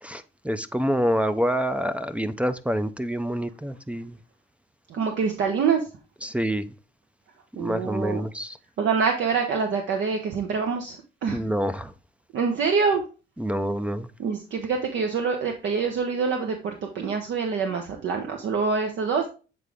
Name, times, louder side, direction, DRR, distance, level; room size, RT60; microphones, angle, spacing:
voice 1, 0.0-4.2 6.2-6.7 7.6-8.6 11.3-11.9 13.4-14.1, equal, 5° right, 0.5 m, -27 dB
voice 2, 4.9-5.8 7.5-8.2 8.8-11.4 12.3-13.0 14.2-19.3, right 5 dB, 70° right, 0.9 m, -25 dB
8.1 x 3.7 x 3.4 m
cardioid pair, 90°, 20 cm